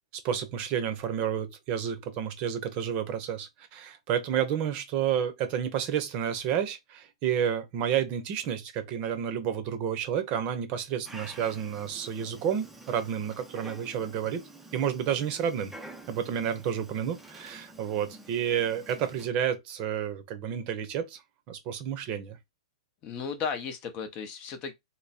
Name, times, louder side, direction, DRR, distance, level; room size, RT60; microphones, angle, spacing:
voice 1, 0.2-14.4 14.7-15.7 16.1-21.2 21.5-22.4, right 9 dB, 35° right, 0.8 m, -30 dB
Dog, 11.0-19.3, right 1 dB, 5° right, 0.6 m, -48 dB
voice 2, 23.0-24.7, left 6 dB, 30° left, 0.7 m, -35 dB
3.4 x 2.1 x 4.1 m
hypercardioid pair, 140°, 3 cm